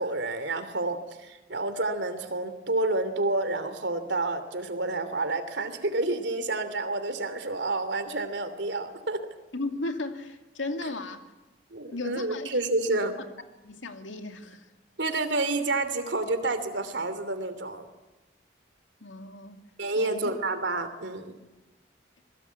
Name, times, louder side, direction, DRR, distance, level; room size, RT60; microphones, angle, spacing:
voice 1, 0.0-9.2 11.7-13.2 15.0-17.9 19.8-21.3, right 2 dB, 70° right, 10 dB, 3.0 m, -29 dB
voice 2, 9.5-11.2 11.9-12.5 12.9-13.0 13.6-14.7 19.0-19.6 20.0-20.4, left 2 dB, 90° left, 6 dB, 2.5 m, -35 dB
27.0 x 22.5 x 8.4 m, 1.0 s
head